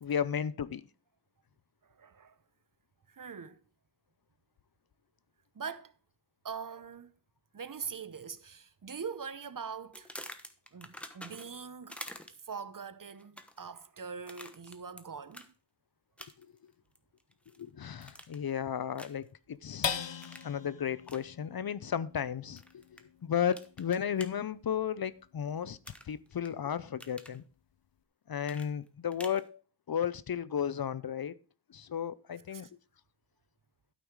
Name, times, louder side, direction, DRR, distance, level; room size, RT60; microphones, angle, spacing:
voice 1, 0.0-0.8 17.6-19.9 20.4-22.8 23.2-25.8 26.1-27.4 28.3-29.6 29.9-31.4 31.7-32.7, left 8 dB, 55° left, 0.6 m, -34 dB
voice 2, 1.8-2.4 3.1-3.6 5.5-5.9 6.4-7.1 7.5-10.1 10.7-12.0 12.4-15.5 32.5-32.7, right 6 dB, 50° right, 0.8 m, -42 dB
sound 1, 9.9-11.6 11.9-12.5 13.2-13.7 14.3-15.0 15.3-15.5 16.2-16.6 17.0-17.6 18.0-18.5 19.0-19.3 20.2-20.5 21.0-21.2 22.6-23.0 23.5-24.3 25.8-26.5 26.8-27.4 28.4-29.4, equal, 5° left, 1.0 m, -47 dB
sound 2, 19.8-26.5 27.0-27.1 27.5-28.0, left 7 dB, 75° left, 0.9 m, -42 dB
12.5 x 5.5 x 4.7 m
wide cardioid pair, 85°, 43 cm